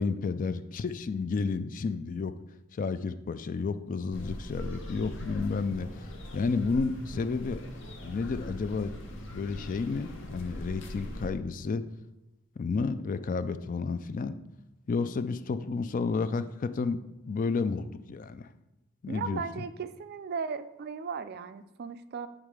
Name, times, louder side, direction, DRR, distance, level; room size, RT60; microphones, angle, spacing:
voice 1, 0.0-2.3 2.7-7.6 8.0-9.0 9.3-11.8 12.6-14.4 14.9-18.5 19.0-19.4, left 4 dB, 35° left, 12 dB, 0.3 m, -31 dB
sound 1, 4.1-11.3, equal, 55° left, 0.9 m, -41 dB
voice 2, 19.1-22.3, right 5 dB, 45° right, 12 dB, 0.4 m, -36 dB
8.9 x 3.7 x 4.8 m, 0.96 s
head